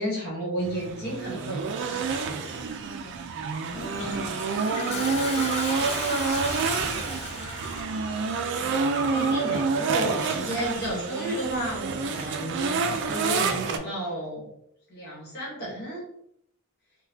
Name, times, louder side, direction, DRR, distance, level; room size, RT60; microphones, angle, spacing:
voice 1, 0.0-2.4 8.6-14.5 14.9-16.0, right 1 dB, 45° left, -5 dB, 1.2 m, -33 dB
sound 1, 0.6-13.8, right 4 dB, 55° right, 0.4 m, -28 dB
Toilet flush, 3.7-8.0, left 3 dB, 30° left, 0.4 m, -36 dB
voice 2, 3.7-7.2, left 1 dB, ahead, -8 dB, 0.8 m, -43 dB
sound 2, 5.1-10.5 10.8-11.1, left 2 dB, 85° left, 0.5 m, -48 dB
3.8 x 2.2 x 2.7 m, 0.75 s
head